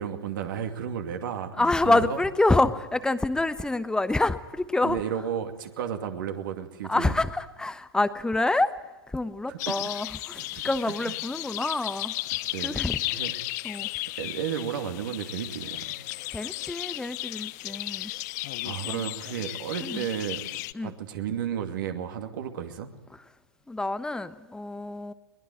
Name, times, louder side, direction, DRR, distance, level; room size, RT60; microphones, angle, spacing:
voice 1, 0.0-2.2 4.8-7.2 9.5-10.0 10.4-11.1 12.4-12.8 13.1-13.3 14.2-16.1 18.6-20.4 20.8-22.9, right 8 dB, 55° right, 6 dB, 2.5 m, -33 dB
voice 2, 1.6-5.0 6.9-8.7 9.1-12.1 12.6-13.0 13.6-13.9 16.3-18.1 18.9-19.0 19.8-20.1 20.7-20.9 23.7-25.1, left 2 dB, 5° left, 14 dB, 1.0 m, -27 dB
sound 1, 9.6-20.7, left 19 dB, 45° left, 0.9 m, -34 dB
22.5 x 20.5 x 9.3 m, 1.1 s
figure-of-eight pair, 105°, 13 cm